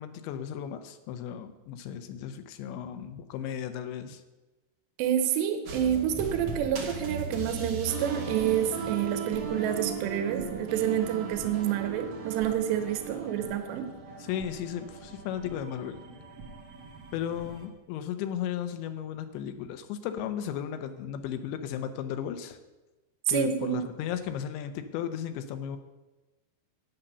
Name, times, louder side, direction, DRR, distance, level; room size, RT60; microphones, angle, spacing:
voice 1, 0.0-4.2 13.2-13.3 14.2-16.0 17.1-22.6 23.3-25.8, left 9 dB, 90° left, 8 dB, 3.1 m, -35 dB
voice 2, 5.0-13.9 23.3-23.8, right 10 dB, 85° right, 7 dB, 3.0 m, -28 dB
sound 1, 5.7-17.7, right 4 dB, 60° right, 1.6 m, -38 dB
10.0 x 8.9 x 6.7 m, 1.1 s
omnidirectional pair, 5.0 m